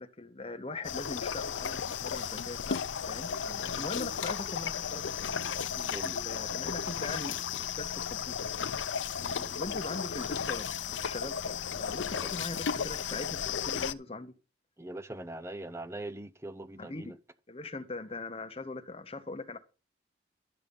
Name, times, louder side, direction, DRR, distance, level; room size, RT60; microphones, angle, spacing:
voice 1, 0.0-2.8 3.1-8.5 9.2-14.3 16.8-17.2 17.5-19.6, left 2 dB, 30° left, 1.1 m, -41 dB
sound 1, 0.8-13.9, left 7 dB, 85° left, 0.6 m, -34 dB
voice 2, 5.9-6.2 12.1-12.3 14.8-17.2, right 1 dB, 15° right, 0.7 m, -42 dB
12.0 x 7.0 x 5.5 m
head